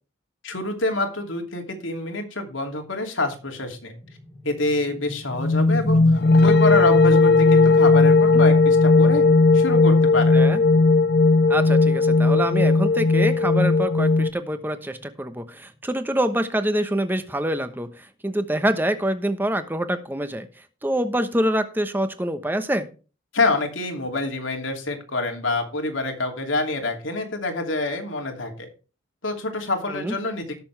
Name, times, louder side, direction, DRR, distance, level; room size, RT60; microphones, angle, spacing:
voice 1, 0.4-4.0 4.4-6.0 6.4-9.3 9.5-10.4 23.3-28.7 29.2-30.6, left 2 dB, 85° left, 3 dB, 2.7 m, -26 dB
sound 1, 4.0-15.5, equal, 10° left, 2.1 m, -37 dB
sound 2, 5.4-14.3, left 3 dB, 55° left, 0.6 m, -16 dB
voice 2, 11.5-17.9 18.2-20.5 20.8-22.9 29.9-30.1, right 1 dB, 10° right, 9 dB, 1.0 m, -25 dB
18.0 x 7.0 x 3.4 m, 0.33 s
head